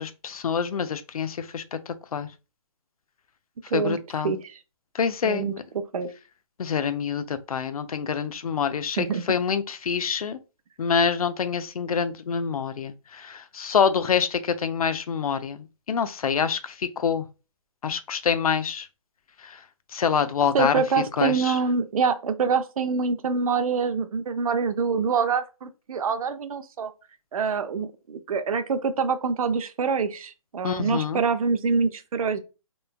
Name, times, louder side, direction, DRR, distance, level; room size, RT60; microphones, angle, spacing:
voice 1, 0.0-2.3 3.7-4.3 4.9-5.6 6.6-10.4 10.8-15.6 15.9-17.3 17.8-18.9 19.4-19.6 19.9-20.8 21.2-21.6 30.6-31.2, left 6 dB, 90° left, 0.4 m, -26 dB
voice 2, 4.2-4.6 5.2-6.1 9.0-9.2 20.5-26.9 27.3-32.4, right 5 dB, 80° right, 0.5 m, -25 dB
3.1 x 2.1 x 2.3 m
hypercardioid pair, 155°, 18 cm